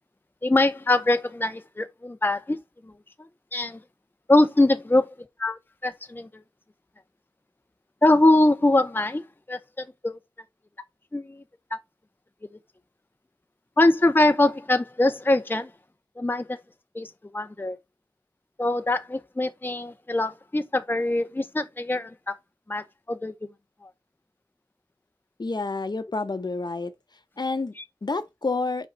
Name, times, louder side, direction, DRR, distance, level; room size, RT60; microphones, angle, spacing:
voice 1, 0.4-2.6 2.8-2.9 3.5-3.8 4.3-5.1 5.4-6.3 8.0-10.2 11.1-11.4 11.7-11.8 13.8-15.7 16.2-16.6 16.9-17.8 18.6-22.3 22.7-23.3 23.8-23.9 27.8-27.9, left 2 dB, 25° left, 0.6 m, -23 dB
voice 2, 25.4-26.9 27.4-27.7 28.0-28.9, left 3 dB, 60° left, 0.8 m, -29 dB
5.6 x 4.4 x 3.9 m
wide cardioid pair, 60°, 8 cm